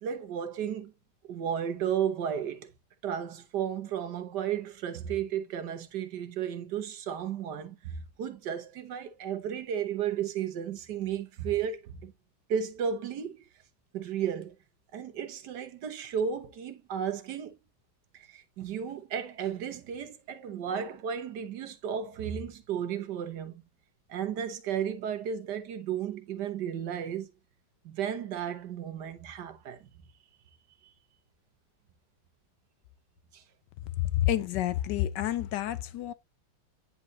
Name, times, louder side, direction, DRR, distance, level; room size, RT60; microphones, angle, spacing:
voice 1, 0.0-0.9 1.3-2.7 3.0-12.1 12.5-13.5 13.9-14.5 14.9-17.5 18.1-23.6 24.1-27.3 27.8-29.8 33.3-33.4, right 8 dB, 60° right, 1.5 m, -33 dB
voice 2, 34.1-36.1, left 13 dB, 70° left, 1.1 m, -29 dB
9.6 x 4.2 x 2.6 m
omnidirectional pair, 2.2 m